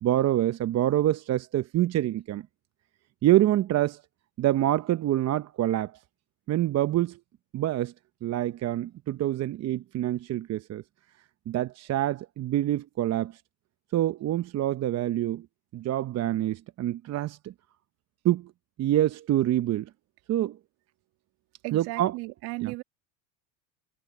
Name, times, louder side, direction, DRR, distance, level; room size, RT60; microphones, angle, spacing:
voice 1, 0.0-2.5 3.2-4.0 4.4-6.0 6.5-7.2 7.5-7.9 8.2-10.8 11.5-13.4 13.9-15.5 15.7-17.5 18.2-18.5 18.8-19.9 20.3-20.6 21.7-22.1 22.6-22.7, right 13 dB, 40° right, 0.9 m, -26 dB
voice 2, 21.6-22.8, right 21 dB, 60° right, 2.4 m, -35 dB
supercardioid pair, 100°, 42 cm